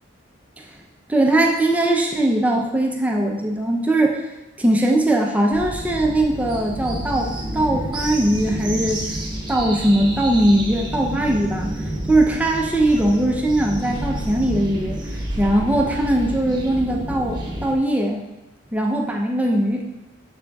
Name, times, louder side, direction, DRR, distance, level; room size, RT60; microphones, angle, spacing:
voice 1, 1.1-4.3 4.6-9.1 9.5-11.7 12.1-15.0 15.4-18.2 18.7-19.8, right 1 dB, 5° right, 0 dB, 0.5 m, -20 dB
sound 1, 5.5-17.8, right 1 dB, 25° right, 0.9 m, -29 dB
7.5 x 6.5 x 2.3 m, 1.0 s
head